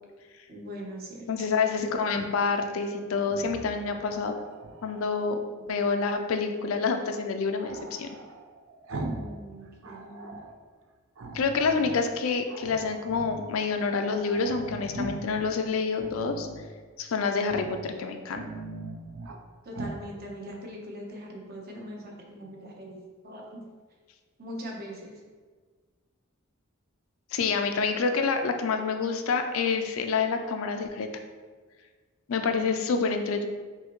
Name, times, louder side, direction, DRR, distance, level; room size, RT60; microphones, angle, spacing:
voice 1, 0.5-1.3 9.1-10.4 19.6-23.0 23.2-23.6 24.4-25.2, equal, 50° right, -1 dB, 0.9 m, -41 dB
voice 2, 1.3-4.4 4.8-5.4 5.7-8.1 11.3-16.5 17.0-18.4 27.3-31.1 32.3-33.5, left 4 dB, 85° left, 6 dB, 0.4 m, -27 dB
Growling, 3.2-5.2 7.6-9.4 9.7-10.6 11.1-12.0 12.5-13.5 13.8-13.9 14.1-15.4 15.9-16.7 17.4-17.8 18.2-19.4 19.7-20.0, right 2 dB, 75° right, 0.5 m, -40 dB
5.5 x 2.6 x 3.0 m, 1.5 s
head